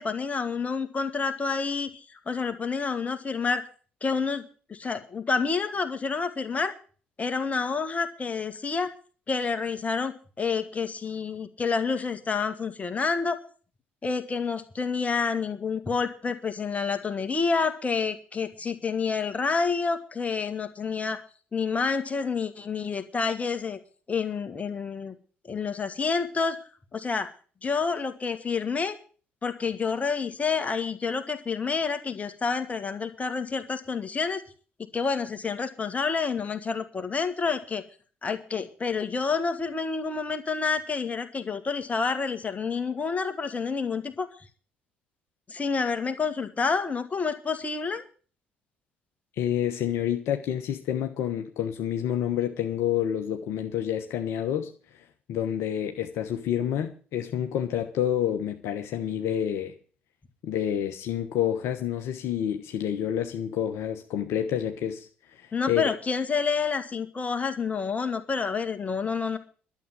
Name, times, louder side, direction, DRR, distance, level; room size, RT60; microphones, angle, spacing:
voice 1, 0.0-1.9 2.3-3.6 4.0-6.7 7.2-8.9 9.3-13.4 14.0-21.2 21.5-23.8 24.1-25.1 25.5-26.6 26.9-27.3 27.6-29.0 29.4-34.4 34.9-37.8 38.2-44.3 45.5-48.0 65.5-69.4, left 5 dB, 25° left, 1.9 m, -28 dB
voice 2, 49.4-54.7 55.3-59.7 60.4-65.8, left 10 dB, 55° left, 1.2 m, -28 dB
12.0 x 7.4 x 9.3 m
figure-of-eight pair, 50°, 5 cm